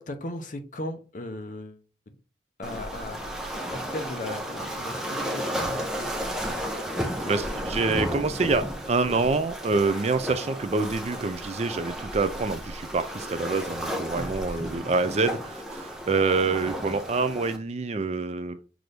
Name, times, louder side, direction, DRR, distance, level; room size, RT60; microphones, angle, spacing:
voice 1, 0.0-2.2 2.6-3.2 3.7-6.1 14.1-14.6, left 1 dB, 45° left, 6 dB, 0.7 m, -37 dB
Waves surf, 2.6-17.6, equal, 5° right, 0.7 m, -33 dB
voice 2, 7.2-18.6, right 3 dB, 35° right, 11 dB, 0.4 m, -26 dB
6.0 x 2.6 x 3.3 m, 0.36 s
head